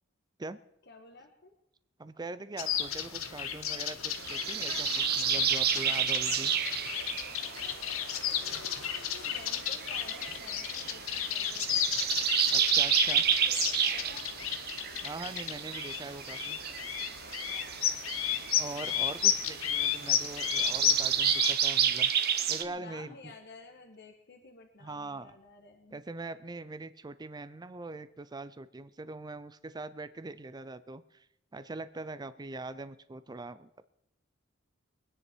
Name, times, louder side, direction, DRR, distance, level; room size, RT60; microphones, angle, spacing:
voice 1, 0.9-1.5 7.3-11.9 12.6-12.7 13.1-13.6 13.9-14.4 18.0-18.5 22.5-26.0, left 3 dB, 55° left, 2 dB, 1.4 m, -53 dB
voice 2, 2.0-6.5 12.5-13.2 15.0-16.6 18.6-22.1 22.5-23.3 24.8-25.4 25.9-31.3 31.5-33.7, right 2 dB, 20° right, 13 dB, 0.5 m, -42 dB
sound 1, 2.6-21.5, left 9 dB, 85° left, 1.2 m, -33 dB
sound 2, 4.1-22.6, right 9 dB, 50° right, 0.9 m, -31 dB
23.5 x 9.9 x 4.5 m, 0.79 s
head